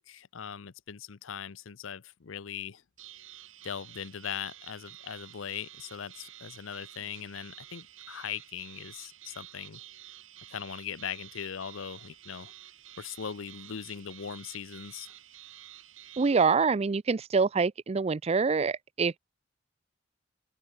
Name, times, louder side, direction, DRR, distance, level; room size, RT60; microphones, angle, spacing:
voice 1, 0.0-2.8 3.6-9.8 10.5-12.5 13.0-15.1, left 8 dB, 80° left, 0.6 m, -40 dB
sound 1, 3.0-16.5, right 13 dB, 85° right, 4.0 m, -50 dB
voice 2, 16.2-19.1, right 5 dB, 30° right, 0.4 m, -25 dB
open air
head